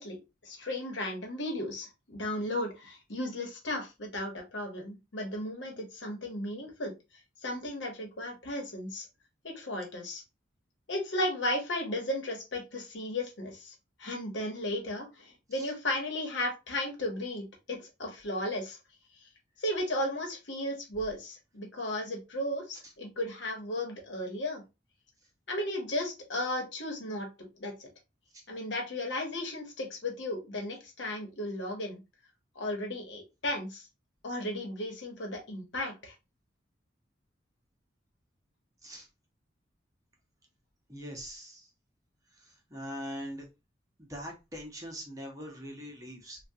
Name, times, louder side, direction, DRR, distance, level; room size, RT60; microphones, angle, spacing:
voice 1, 0.0-6.9 7.4-9.1 9.4-10.2 10.9-13.7 14.0-18.8 19.6-24.6 25.5-27.9 28.5-32.0 32.5-33.9 34.2-36.1, left 1 dB, 75° left, 2 dB, 1.1 m, -35 dB
voice 2, 40.9-41.7 42.7-43.4 44.1-46.4, equal, 20° right, 0 dB, 0.8 m, -41 dB
3.5 x 2.3 x 2.7 m, 0.25 s
head